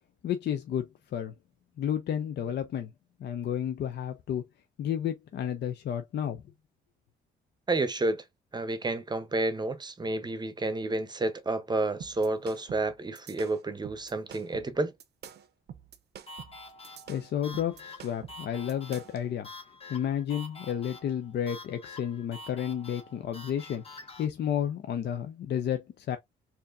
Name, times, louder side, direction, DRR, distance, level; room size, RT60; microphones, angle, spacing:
voice 1, 0.2-1.3 1.8-2.9 3.2-4.4 4.8-6.4 17.1-19.5 19.9-26.2, left 9 dB, 60° left, 0.5 m, -32 dB
voice 2, 7.7-8.2 8.5-14.9, right 2 dB, 20° right, 0.7 m, -30 dB
sound 1, 12.0-19.2, right 8 dB, 55° right, 0.6 m, -47 dB
sound 2, 16.3-24.3, left 2 dB, 30° left, 1.2 m, -47 dB
4.3 x 2.6 x 2.5 m
cardioid pair, 90°, 20 cm